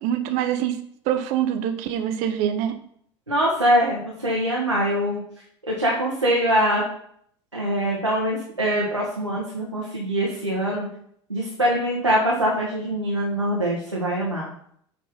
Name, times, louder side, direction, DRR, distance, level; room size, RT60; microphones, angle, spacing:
voice 1, 0.0-2.8, right 10 dB, 50° right, 9 dB, 0.8 m, -25 dB
voice 2, 3.3-5.2 5.7-6.8 7.5-10.9 11.3-14.5, equal, 90° right, -4 dB, 1.2 m, -23 dB
7.6 x 3.9 x 4.2 m, 0.66 s
figure-of-eight pair, 70°, 15 cm